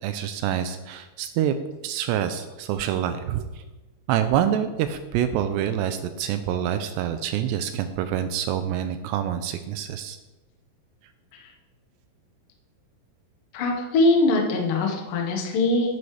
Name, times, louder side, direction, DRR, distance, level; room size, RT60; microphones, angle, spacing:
voice 1, 0.0-1.5 1.8-3.6 4.1-10.2, right 10 dB, 85° right, 9 dB, 2.6 m, -26 dB
voice 2, 13.5-16.0, left 2 dB, 60° left, 1 dB, 2.5 m, -22 dB
11.0 x 9.6 x 3.3 m, 1.1 s
omnidirectional pair, 5.1 m